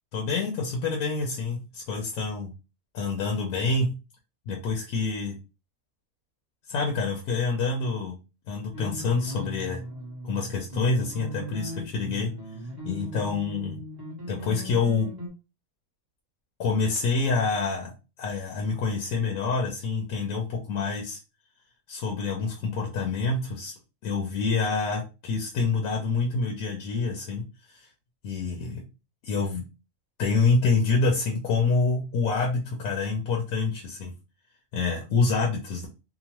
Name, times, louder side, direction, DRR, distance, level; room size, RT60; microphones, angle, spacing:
voice 1, 0.1-2.5 2.9-3.9 4.5-5.3 6.7-8.2 8.5-9.8 10.2-12.3 12.9-13.8 14.3-15.1 16.6-17.9 18.2-21.2 21.9-23.7 24.0-27.9 28.2-28.8 29.2-29.6 30.2-34.1 34.7-35.9, left 4 dB, 75° left, 1 dB, 1.0 m, -27 dB
sound 1, 8.7-15.3, equal, 25° right, 0.5 m, -38 dB
2.9 x 2.1 x 2.9 m, 0.29 s
omnidirectional pair, 1.5 m